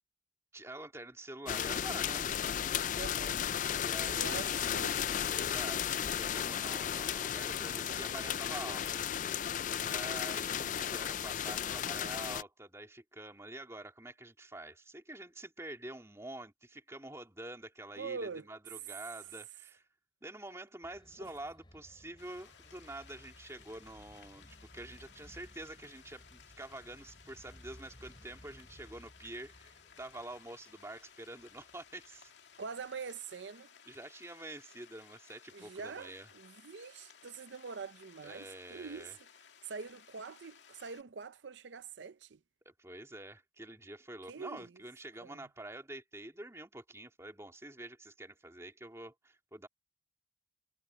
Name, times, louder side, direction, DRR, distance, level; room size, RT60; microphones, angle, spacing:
voice 1, 0.5-2.3 3.8-4.6 5.3-9.0 9.8-19.8 20.2-32.3 33.9-36.3 38.2-39.2 42.6-49.7, right 1 dB, 15° right, 3.4 m, -47 dB
sound 1, 1.5-12.4, left 9 dB, 45° left, 0.3 m, -34 dB
voice 2, 2.9-3.4 4.0-5.1 9.8-10.2 18.0-18.4 21.2-21.3 32.6-33.7 35.5-39.1 39.6-42.4 44.3-44.7 45.2-45.4, right 5 dB, 85° right, 0.6 m, -44 dB
sound 2, 20.8-33.1, equal, 25° left, 7.5 m, -60 dB
sound 3, 22.2-41.0, left 7 dB, 85° left, 2.2 m, -59 dB
head